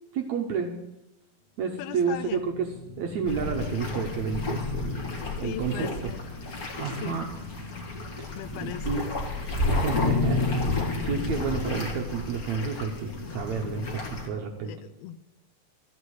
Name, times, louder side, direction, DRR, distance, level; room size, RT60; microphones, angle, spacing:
voice 1, 0.1-0.7 1.6-2.5 3.0-5.9 6.8-7.3 8.2-9.0 9.7-14.7, right 6 dB, 70° right, 3 dB, 1.8 m, -31 dB
voice 2, 1.8-2.5 5.4-6.2 6.9-7.3 8.4-9.0 14.6-15.2, left 11 dB, 90° left, 12 dB, 2.6 m, -38 dB
sound 1, 1.8-14.5, left 4 dB, 60° left, 2.1 m, -35 dB
sound 2, 3.2-14.3, left 2 dB, 40° left, 1.3 m, -33 dB
13.0 x 8.0 x 8.1 m, 0.88 s
omnidirectional pair, 4.4 m